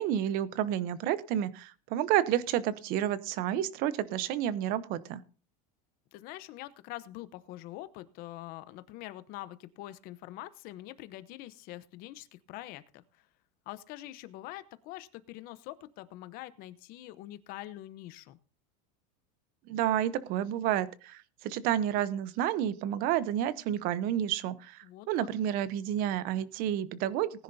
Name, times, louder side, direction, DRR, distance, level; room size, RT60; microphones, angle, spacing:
voice 1, 0.0-5.2 19.7-27.4, right 11 dB, 45° right, 17 dB, 0.8 m, -30 dB
voice 2, 6.1-13.3 13.7-18.4 24.8-25.3, left 15 dB, 45° left, 14 dB, 0.9 m, -45 dB
19.0 x 10.5 x 2.7 m, 0.37 s
supercardioid pair, 145°, 21 cm